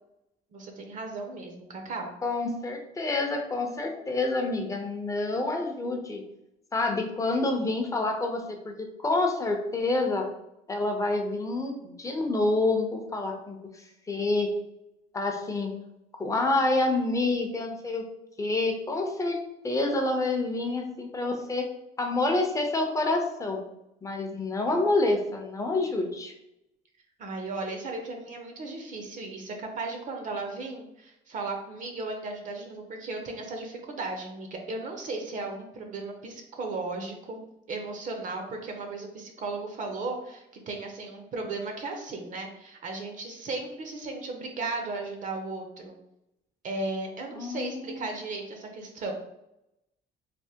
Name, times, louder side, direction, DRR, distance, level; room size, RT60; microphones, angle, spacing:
voice 1, 0.5-2.1 27.2-37.4 37.7-46.0 46.6-49.1, right 3 dB, 50° right, 3 dB, 0.5 m, -36 dB
voice 2, 2.2-6.2 6.7-10.3 10.7-14.5 15.1-15.7 16.2-18.0 18.4-21.7 22.0-23.6 24.0-26.3 47.3-48.1, left 2 dB, 20° left, 3 dB, 0.5 m, -28 dB
3.3 x 2.1 x 2.8 m, 0.85 s
cardioid pair, 110°, 17 cm